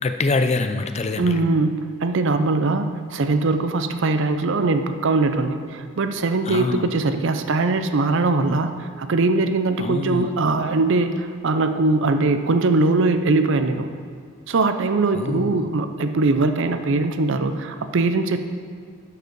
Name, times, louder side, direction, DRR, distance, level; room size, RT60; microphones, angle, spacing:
voice 1, 0.0-1.4 6.5-6.9 9.8-10.3 15.1-15.6, left 3 dB, 30° left, 8 dB, 0.4 m, -24 dB
voice 2, 1.2-13.9 14.5-18.4, right 3 dB, 55° right, 8 dB, 0.5 m, -21 dB
11.5 x 4.8 x 4.6 m, 2.1 s
head